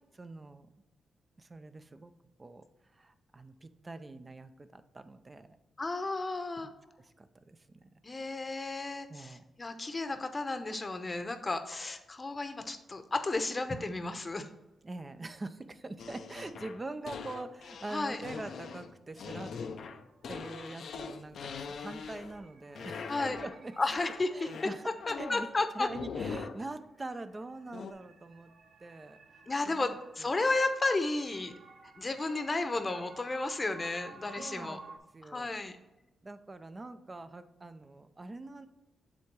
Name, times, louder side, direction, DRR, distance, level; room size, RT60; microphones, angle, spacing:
voice 1, 0.1-0.7 1.4-2.1 2.4-2.6 2.9-5.5 7.0-7.9 9.1-9.4 14.8-19.5 20.3-23.8 24.3-24.9 25.2-25.5 25.7-28.5 28.8-29.2 29.7-30.4 34.4-35.6 36.2-38.7, right 2 dB, 30° right, 11 dB, 0.5 m, -44 dB
voice 2, 5.8-6.7 8.0-14.5 17.9-18.2 23.1-23.4 23.8-24.5 25.1-25.9 29.5-31.5 32.0-34.8 35.2-35.8, left 2 dB, 30° left, 8 dB, 0.8 m, -33 dB
sound 1, 16.0-22.5 22.8-23.6 23.9-25.5 25.9-26.6 27.7-27.9, left 5 dB, 75° left, 0.5 m, -42 dB
sound 2, 19.7-35.0, right 4 dB, 65° right, 0.7 m, -55 dB
7.6 x 3.5 x 4.6 m, 1.0 s
cardioid pair, 70°, 0 cm